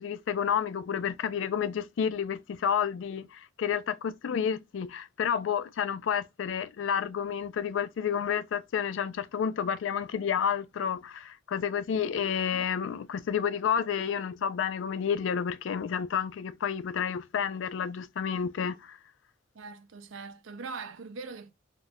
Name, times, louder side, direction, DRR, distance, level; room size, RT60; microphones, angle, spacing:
voice 1, 0.0-19.0, left 7 dB, 70° left, 0.3 m, -30 dB
voice 2, 19.5-21.5, right 4 dB, 75° right, 0.6 m, -41 dB
3.7 x 2.4 x 2.6 m
head